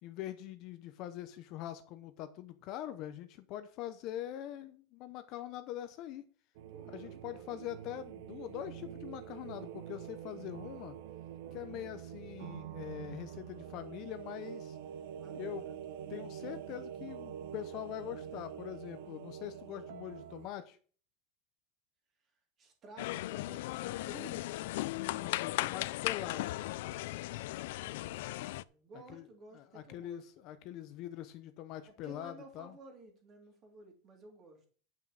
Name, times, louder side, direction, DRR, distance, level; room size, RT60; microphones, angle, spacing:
voice 1, 0.0-6.2 6.8-11.0 11.5-14.8 15.3-15.6 16.1-20.8 25.0-26.6 29.1-29.3 29.5-32.8, left 12 dB, 40° left, 10 dB, 0.8 m, -43 dB
sound 1, 6.5-20.5, right 9 dB, 65° right, 0.8 m, -46 dB
voice 2, 6.7-7.7 11.6-12.0 15.2-16.2 22.6-24.7 27.7-30.2 31.8-34.6, right 3 dB, 25° right, 3 dB, 2.8 m, -55 dB
sound 2, 23.0-28.6, left 17 dB, 65° left, 0.4 m, -37 dB
9.8 x 5.9 x 6.4 m, 0.41 s
supercardioid pair, 180°, 0 cm